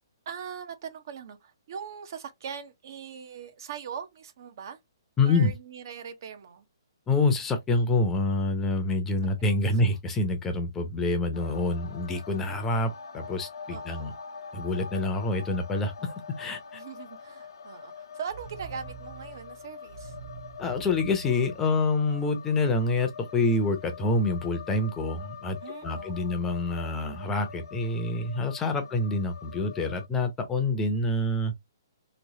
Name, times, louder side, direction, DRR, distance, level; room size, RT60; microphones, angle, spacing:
voice 1, 0.3-4.8 5.2-6.7 9.4-9.6 13.7-14.2 16.7-20.1 25.6-26.5 28.8-28.9, right 7 dB, 50° right, 0.8 m, -41 dB
voice 2, 5.2-5.5 7.1-14.1 14.5-16.8 20.6-31.5, left 2 dB, 10° left, 0.6 m, -27 dB
sound 1, 11.3-30.1, left 6 dB, 75° left, 0.7 m, -44 dB
sound 2, 18.3-22.3, right 5 dB, 85° right, 1.1 m, -45 dB
3.1 x 3.1 x 2.7 m
hypercardioid pair, 155°, 2 cm